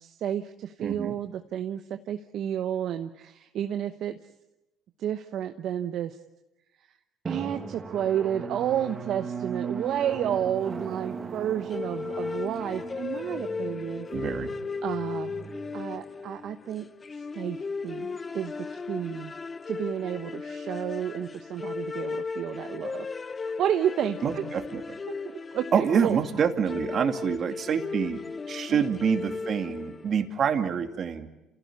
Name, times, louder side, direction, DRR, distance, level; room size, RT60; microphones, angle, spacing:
voice 1, 0.0-4.2 5.0-6.2 6.9-7.0 7.2-14.1 14.8-15.3 15.7-16.9 17.1-19.3 19.7-23.1 23.4-24.4 25.1-26.2 28.7-28.8, right 10 dB, 60° right, 7 dB, 1.0 m, -31 dB
voice 2, 0.8-1.2 14.1-14.5 24.2-25.0 25.7-28.2 28.5-31.3, right 7 dB, 45° right, 6 dB, 2.5 m, -27 dB
Drum, 7.2-16.5, right 5 dB, 30° right, 1.7 m, -38 dB
sound 1, 11.7-30.2, left 4 dB, 30° left, 0.9 m, -36 dB
28.0 x 16.5 x 9.6 m, 0.99 s
supercardioid pair, 90°, 0 cm